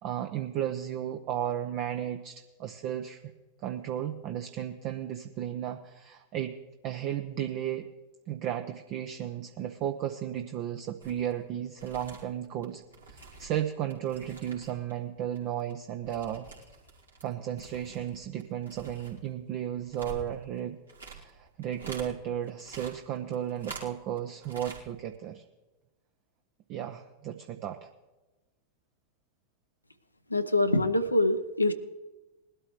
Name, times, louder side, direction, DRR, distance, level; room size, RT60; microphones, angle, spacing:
voice 1, 0.0-3.2 3.6-6.6 6.8-7.9 8.3-12.8 13.1-16.5 17.2-20.8 21.1-25.4 26.7-27.9, right 10 dB, 40° right, 6 dB, 0.7 m, -34 dB
sound 1, 11.0-11.3 11.6-14.9 15.2-17.3 17.5-22.1 22.4-24.2 24.4-24.8 25.1-25.2, right 4 dB, 80° right, 2.7 m, -47 dB
voice 2, 30.3-31.7, left 2 dB, 85° left, 8 dB, 0.8 m, -24 dB
20.0 x 12.5 x 3.1 m, 1.1 s
figure-of-eight pair, 90°, 0 cm